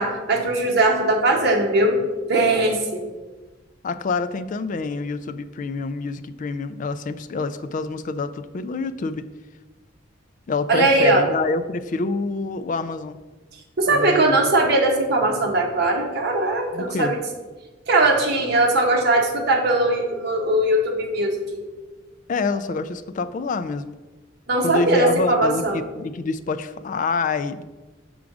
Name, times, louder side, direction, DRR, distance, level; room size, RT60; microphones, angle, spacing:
voice 1, 0.0-2.0 2.3-3.0 10.7-11.2 13.8-17.2 17.9-21.6 24.5-25.8, right 2 dB, 55° right, 1 dB, 1.1 m, -20 dB
voice 2, 3.8-9.3 10.5-13.2 13.9-14.4 16.7-17.1 22.3-23.9 24.6-27.6, left 4 dB, 40° left, 12 dB, 0.3 m, -27 dB
6.0 x 3.7 x 5.9 m, 1.2 s
head